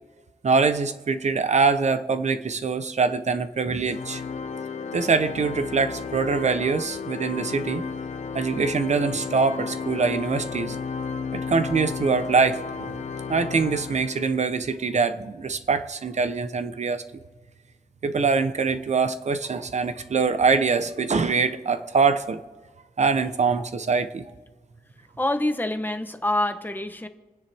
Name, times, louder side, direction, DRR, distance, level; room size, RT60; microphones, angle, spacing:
voice 1, 0.4-4.2 4.9-7.8 8.3-10.8 11.3-13.0 13.3-17.0 18.0-22.4 23.0-24.3, right 4 dB, 50° right, 11 dB, 0.8 m, -24 dB
Organ, 3.9-14.5, left 5 dB, 50° left, 0.7 m, -33 dB
voice 2, 25.2-27.1, left 1 dB, 10° left, 8 dB, 0.9 m, -26 dB
28.5 x 9.8 x 3.5 m, 1.3 s
wide cardioid pair, 140°, 16 cm